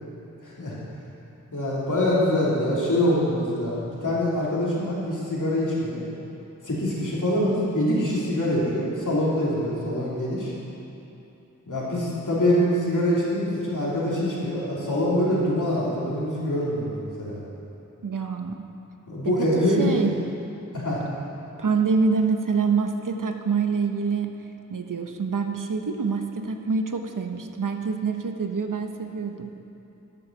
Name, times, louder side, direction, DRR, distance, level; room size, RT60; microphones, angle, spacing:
voice 1, 0.4-0.8 1.5-6.0 6.6-10.5 11.7-17.4 19.1-19.9 20.7-21.0, left 1 dB, 75° left, -7 dB, 2.9 m, -24 dB
voice 2, 18.0-18.6 19.2-20.1 21.6-24.3 24.7-29.5, right 5 dB, 80° right, 6 dB, 0.8 m, -26 dB
11.5 x 6.8 x 7.3 m, 2.9 s
wide cardioid pair, 50°, 31 cm